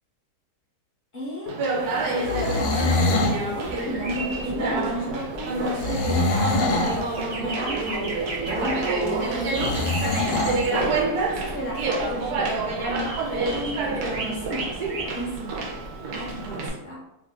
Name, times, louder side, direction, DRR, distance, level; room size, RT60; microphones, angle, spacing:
voice 1, 1.1-1.5 2.1-15.6 16.1-17.0, equal, 45° left, -5 dB, 0.7 m, -34 dB
Conversation, 1.5-16.7, right 3 dB, 90° right, 1.2 m, -28 dB
sound 1, 2.2-3.4 5.8-7.0 9.5-10.6, left 2 dB, 85° left, 1.1 m, -24 dB
sound 2, 3.6-16.5, right 2 dB, 55° right, 0.5 m, -37 dB
2.9 x 2.3 x 3.7 m, 0.85 s
omnidirectional pair, 1.6 m